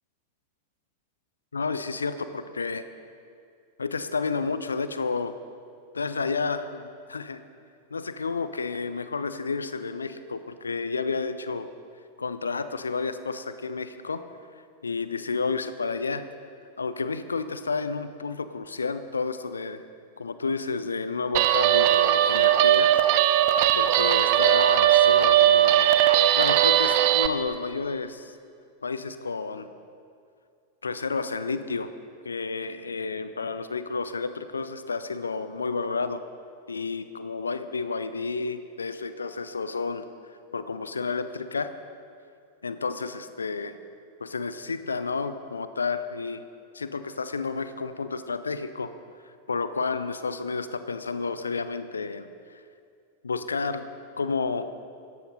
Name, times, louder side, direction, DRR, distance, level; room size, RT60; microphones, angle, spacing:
voice 1, 1.5-2.8 3.8-5.4 5.9-7.4 7.9-11.7 12.2-14.2 14.8-16.2 16.8-19.8 20.2-23.0 23.5-25.9 26.4-28.4 28.8-29.7 30.8-31.9 32.2-36.2 36.7-40.1 40.5-41.7 42.6-43.7 44.2-46.4 46.7-48.9 49.5-52.6 53.2-53.9 54.2-54.7, left 4 dB, 75° left, 12 dB, 0.7 m, -31 dB
Guitar, 21.3-27.3, right 12 dB, 45° right, 0.7 m, -19 dB
16.5 x 14.0 x 5.4 m, 2.3 s
figure-of-eight pair, 90°, 0 cm